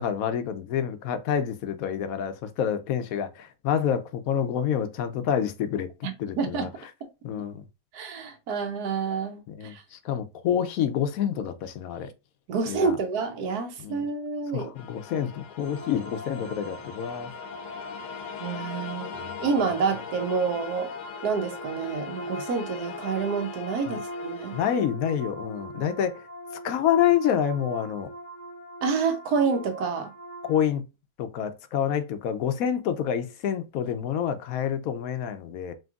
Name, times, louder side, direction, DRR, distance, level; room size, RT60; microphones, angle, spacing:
voice 1, 0.0-5.9 6.2-6.7 7.2-7.6 9.5-12.1 12.7-13.0 13.8-14.0 14.5-17.3 19.2-19.3 23.9-24.0 24.5-26.2 26.6-28.1 30.5-30.8 31.2-35.7, left 9 dB, 70° left, 1.0 m, -27 dB
voice 2, 6.0-6.7 7.9-9.8 12.5-14.7 18.4-19.1 19.4-20.9 21.2-24.6 28.8-30.1, right 5 dB, 70° right, 1.3 m, -28 dB
sound 1, 14.8-24.8, left 7 dB, 85° left, 1.3 m, -41 dB
sound 2, 15.6-30.6, equal, 35° left, 0.9 m, -41 dB
5.1 x 3.1 x 2.4 m
omnidirectional pair, 1.7 m